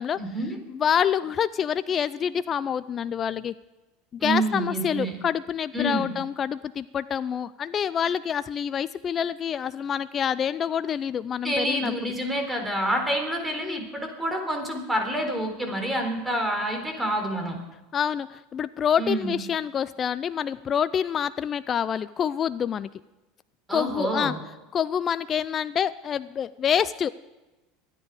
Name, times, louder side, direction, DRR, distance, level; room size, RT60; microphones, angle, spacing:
voice 1, 0.2-0.6 4.2-5.2 5.7-6.1 11.4-17.6 19.0-19.3 23.7-24.4, right 1 dB, 10° right, 4 dB, 3.8 m, -28 dB
voice 2, 0.7-3.5 4.1-12.1 13.6-13.8 17.9-22.9 23.7-24.3 24.7-27.1, left 8 dB, 35° left, 16 dB, 0.4 m, -27 dB
25.5 x 9.8 x 5.0 m, 1.1 s
hypercardioid pair, 100°, 0 cm